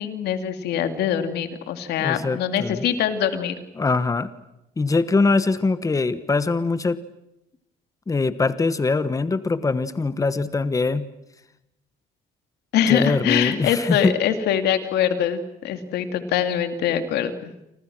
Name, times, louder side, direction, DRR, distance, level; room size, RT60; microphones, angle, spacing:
voice 1, 0.0-3.6 12.7-17.5, left 9 dB, 80° left, 8 dB, 2.6 m, -23 dB
voice 2, 2.0-2.8 3.8-4.3 4.8-7.0 8.1-11.1 12.9-14.1, left 3 dB, 20° left, 13 dB, 1.3 m, -22 dB
30.0 x 25.5 x 6.2 m, 0.87 s
cardioid pair, 110°, 17 cm